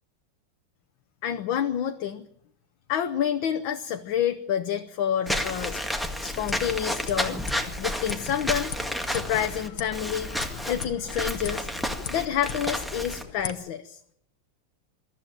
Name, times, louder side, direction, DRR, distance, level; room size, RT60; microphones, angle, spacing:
voice 1, 1.2-2.2 2.9-5.8 6.2-7.4 7.8-8.7 9.1-10.3 10.6-11.7 12.1-14.0, left 9 dB, 70° left, 7 dB, 1.7 m, -28 dB
Walk footsteps / Squeak, 5.3-13.2, equal, ahead, 1.6 m, -31 dB
sound 1, 6.1-13.5, left 6 dB, 55° left, 1.6 m, -40 dB
22.5 x 14.0 x 9.0 m, 0.77 s
omnidirectional pair, 2.3 m